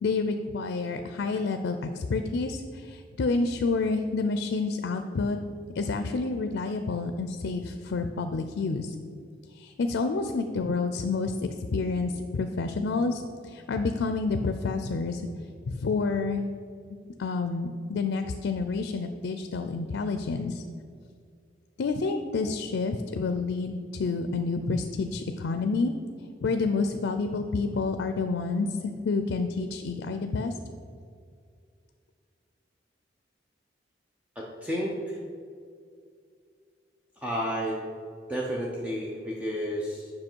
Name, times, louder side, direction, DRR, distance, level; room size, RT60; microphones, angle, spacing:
voice 1, 0.0-5.4 5.8-8.9 9.5-11.3 11.7-15.3 15.6-16.4 17.2-20.6 21.8-25.9 26.4-30.6, left 4 dB, 90° left, 7 dB, 0.4 m, -29 dB
voice 2, 34.4-35.2 37.2-37.8 38.3-40.1, equal, 10° right, -3 dB, 0.6 m, -31 dB
7.7 x 5.7 x 4.5 m, 2.3 s
head